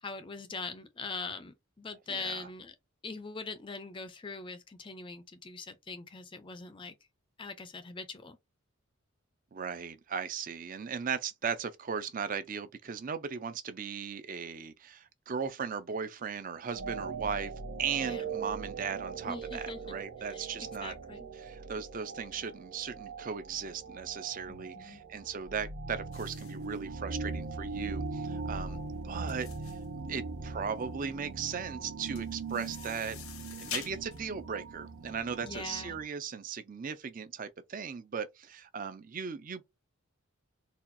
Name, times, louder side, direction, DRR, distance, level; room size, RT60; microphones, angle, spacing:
voice 1, 0.0-2.7 3.0-7.0 7.4-8.4 18.0-18.2 19.2-19.8 20.3-21.3 24.5-25.0 35.4-36.0, left 4 dB, 25° left, 0.4 m, -42 dB
voice 2, 2.1-2.5 9.5-17.5 17.8-21.0 21.3-28.8 29.0-29.8 30.1-33.2 33.5-39.8, right 6 dB, 40° right, 0.4 m, -37 dB
sound 1, 16.7-36.1, right 4 dB, 80° right, 0.7 m, -41 dB
sound 2, 26.1-35.7, left 8 dB, 75° left, 0.7 m, -47 dB
4.1 x 2.3 x 2.6 m
head